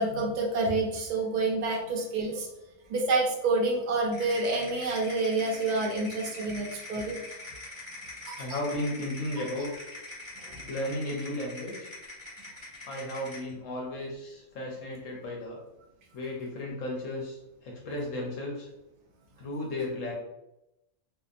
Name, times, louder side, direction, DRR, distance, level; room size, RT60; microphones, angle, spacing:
voice 1, 0.0-2.5 2.9-7.2 8.3-8.4 10.5-10.6, right 3 dB, 65° right, -2 dB, 0.4 m, -28 dB
sound 1, 4.1-13.5, left 2 dB, 5° left, 1.2 m, -43 dB
voice 2, 8.4-9.9 10.7-11.9 12.9-15.6 16.1-18.7 19.4-20.1, left 1 dB, 75° left, -2 dB, 1.0 m, -34 dB
2.7 x 2.1 x 2.4 m, 0.89 s
omnidirectional pair, 1.4 m